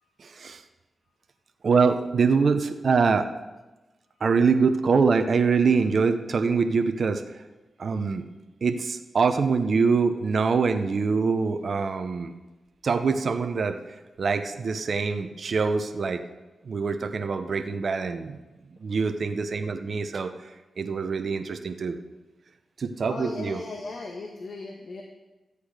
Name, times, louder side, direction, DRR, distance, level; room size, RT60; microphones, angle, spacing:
voice 1, 0.2-0.6 1.6-3.3 4.2-7.4 7.8-8.2 8.6-12.3 12.8-13.8 14.2-16.2 16.6-18.4 18.8-22.0 22.8-23.6, right 5 dB, 65° right, 8 dB, 0.8 m, -24 dB
voice 2, 23.1-25.0, left 3 dB, 65° left, 1 dB, 1.4 m, -37 dB
13.5 x 8.4 x 4.9 m, 1.1 s
supercardioid pair, 45°, 0 cm